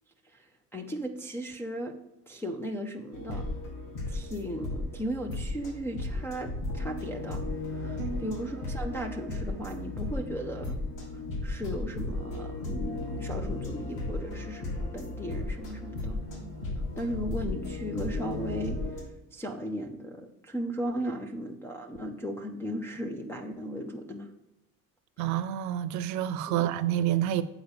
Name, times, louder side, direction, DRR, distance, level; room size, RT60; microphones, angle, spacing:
voice 1, 0.7-2.0 2.3-3.5 4.1-10.8 11.4-16.2 17.0-19.0 19.3-24.3 26.5-26.6, equal, 5° left, 0.3 m, -36 dB
sound 1, 3.1-19.0, left 2 dB, 60° left, 2.9 m, -35 dB
voice 2, 8.0-8.3 25.2-27.4, right 11 dB, 55° right, 0.7 m, -28 dB
8.1 x 4.4 x 7.0 m
cardioid pair, 170°, 35 cm